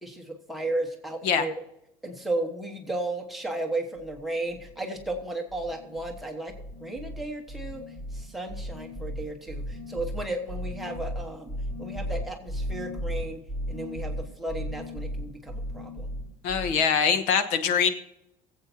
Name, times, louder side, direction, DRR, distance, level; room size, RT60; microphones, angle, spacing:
voice 1, 0.0-1.5 2.0-7.8 8.1-13.4 13.7-16.1, right 2 dB, ahead, 1 dB, 1.2 m, -34 dB
sound 1, 4.0-4.2 4.5-5.2 5.5-6.2 6.5-16.8, equal, 20° left, 4.2 m, -36 dB
voice 2, 16.4-17.9, left 7 dB, 65° left, 9 dB, 1.0 m, -23 dB
23.0 x 8.1 x 2.8 m, 0.86 s
cardioid pair, 180°, 13 cm